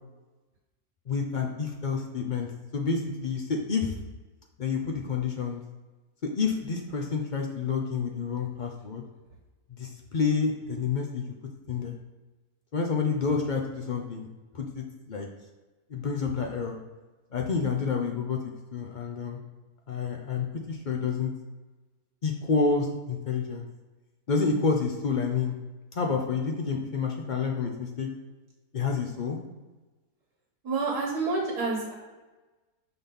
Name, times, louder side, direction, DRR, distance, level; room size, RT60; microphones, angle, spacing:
voice 1, 1.1-3.9 4.6-5.6 6.4-9.0 9.7-11.2 11.7-12.0 12.7-14.3 14.5-15.3 15.9-16.8 17.3-18.4 18.7-19.4 19.9-21.3 22.2-23.7 24.3-25.6 25.9-28.1 28.7-29.4, left 5 dB, 75° left, 1 dB, 0.4 m, -29 dB
voice 2, 30.6-31.9, right 3 dB, 70° right, -1 dB, 1.7 m, -28 dB
5.9 x 4.1 x 5.2 m, 1.2 s
omnidirectional pair, 1.8 m